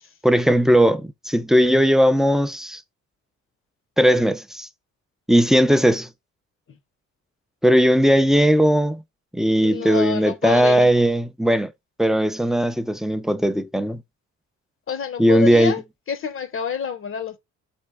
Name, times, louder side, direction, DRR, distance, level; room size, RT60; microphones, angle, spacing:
voice 1, 0.2-2.8 4.0-4.7 5.3-6.1 7.6-9.0 9.3-11.7 12.0-14.0 15.2-15.7, equal, ahead, 0.4 m, -18 dB
voice 2, 9.6-10.9 14.9-17.4, left 7 dB, 45° left, 0.7 m, -29 dB
4.4 x 3.4 x 3.5 m
cardioid pair, 90°, 30 cm